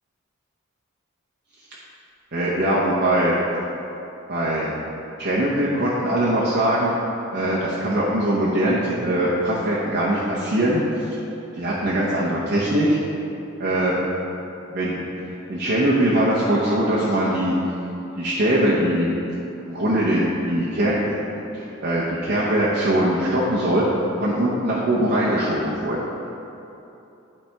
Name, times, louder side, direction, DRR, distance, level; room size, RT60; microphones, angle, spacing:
voice 1, 2.3-3.4 4.3-4.7 5.2-6.9 7.3-11.2 11.5-13.0 13.6-14.0 14.7-17.5 18.2-19.1 19.7-21.2 21.5-26.0, right 1 dB, 50° right, -7 dB, 0.8 m, -21 dB
11.5 x 4.3 x 3.4 m, 2.9 s
head